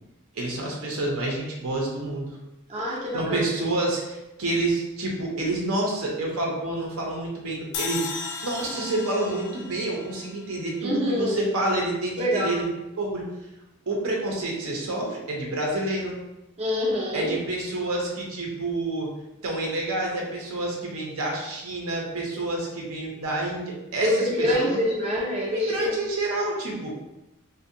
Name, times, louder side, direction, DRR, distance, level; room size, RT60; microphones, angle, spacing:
voice 1, 0.3-2.4 2.9-12.7 13.0-13.3 13.9-16.2 17.1-19.1 19.4-24.1 24.4-24.8 25.5-26.9, right 2 dB, 75° right, -1 dB, 0.6 m, -28 dB
voice 2, 2.7-3.5 10.8-11.4 12.2-12.6 16.6-17.3 24.0-25.9, left 1 dB, 30° right, -4 dB, 0.4 m, -25 dB
sound 1, 7.7-11.0, left 5 dB, 75° left, 0.3 m, -35 dB
2.5 x 2.1 x 2.6 m, 0.95 s
head